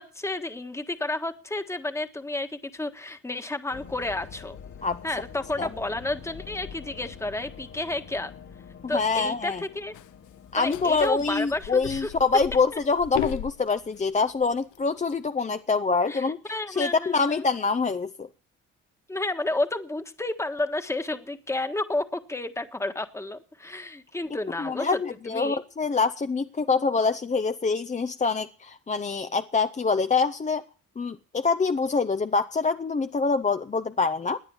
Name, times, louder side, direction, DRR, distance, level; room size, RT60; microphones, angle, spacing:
voice 1, 0.0-4.6 5.0-8.3 8.9-9.9 10.6-12.1 16.1-17.4 19.1-25.0 25.3-25.6, left 2 dB, 10° left, 8 dB, 1.5 m, -31 dB
sound 1, 3.7-15.8, left 7 dB, 65° left, 3.1 m, -47 dB
voice 2, 8.8-9.6 10.5-16.4 16.7-18.3 24.6-30.6 31.0-34.4, left 4 dB, 25° left, 9 dB, 0.7 m, -25 dB
sound 2, 9.9-10.1 10.7-14.0 14.4-15.1, left 14 dB, 85° left, 0.7 m, -35 dB
18.0 x 9.8 x 7.0 m, 0.42 s
cardioid pair, 90°, 30 cm